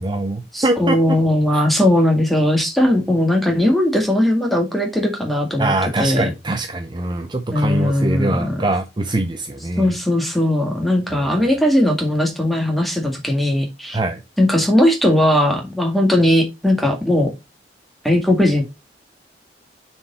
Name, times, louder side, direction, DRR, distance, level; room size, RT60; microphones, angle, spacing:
voice 1, 0.0-1.2 5.6-9.9 11.1-11.5 13.9-14.2, right 2 dB, 25° right, 0.6 m, -23 dB
voice 2, 0.5-5.7 6.0-6.3 7.5-8.6 9.8-14.0 14.4-17.3 18.0-18.6, left 1 dB, ahead, 1.9 m, -18 dB
6.5 x 4.6 x 4.2 m
head